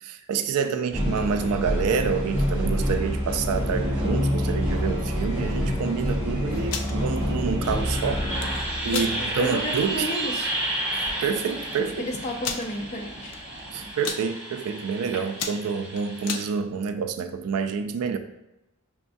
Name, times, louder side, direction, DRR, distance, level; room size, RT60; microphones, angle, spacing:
voice 1, 0.0-8.3 8.8-10.1 11.2-12.1 13.7-18.2, right 6 dB, 80° right, 8 dB, 0.4 m, -28 dB
sound 1, 0.9-16.4, equal, 5° right, 1.0 m, -28 dB
sound 2, 3.6-13.9, right 1 dB, 45° right, 0.7 m, -42 dB
sound 3, 6.6-6.9 8.2-8.5 8.9-9.1 9.6-9.7 10.1-10.3 11.1-11.2 11.4-11.5 12.4-12.7 13.3-13.6 13.9-14.2 14.8-15.0 15.3-16.5, left 6 dB, 80° left, 0.4 m, -32 dB
voice 2, 8.9-10.5 12.0-13.3, left 1 dB, 30° left, 1 dB, 0.6 m, -32 dB
6.0 x 2.3 x 2.6 m, 0.93 s
head